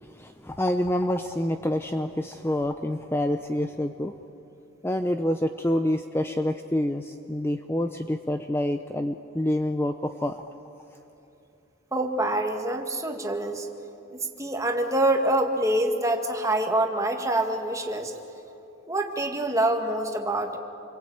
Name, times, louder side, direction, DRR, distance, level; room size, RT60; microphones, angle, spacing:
voice 1, 0.0-4.1 4.8-10.4, left 1 dB, 10° left, 7 dB, 0.6 m, -27 dB
voice 2, 11.9-13.7 14.1-18.1 18.9-20.6, right 1 dB, 15° right, 3 dB, 1.9 m, -26 dB
28.5 x 23.0 x 8.8 m, 3.0 s
head